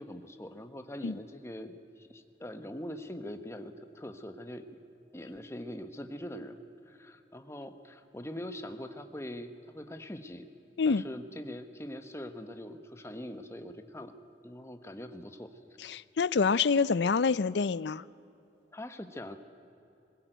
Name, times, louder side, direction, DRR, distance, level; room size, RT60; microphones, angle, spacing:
voice 1, 0.0-4.6 5.1-6.6 6.9-10.4 10.8-14.1 14.4-15.5 18.7-19.4, left 1 dB, 15° left, 8 dB, 1.2 m, -42 dB
voice 2, 15.8-18.0, left 5 dB, 75° left, 19 dB, 0.5 m, -27 dB
21.0 x 21.0 x 9.2 m, 2.7 s
head